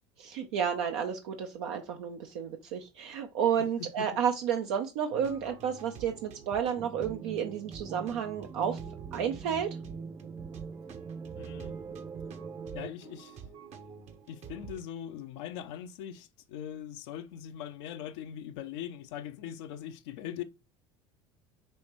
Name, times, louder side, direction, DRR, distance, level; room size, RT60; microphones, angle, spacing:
voice 1, 0.2-8.8 9.1-9.8, right 8 dB, 70° right, 0.7 m, -31 dB
sound 1, 5.1-14.8, right 7 dB, 50° right, 1.0 m, -48 dB
sound 2, 6.8-12.9, right 5 dB, 20° right, 0.3 m, -43 dB
voice 2, 11.4-11.7 12.7-13.4 14.3-20.4, left 10 dB, 70° left, 0.6 m, -41 dB
5.6 x 3.1 x 3.0 m
hypercardioid pair, 75°, 15 cm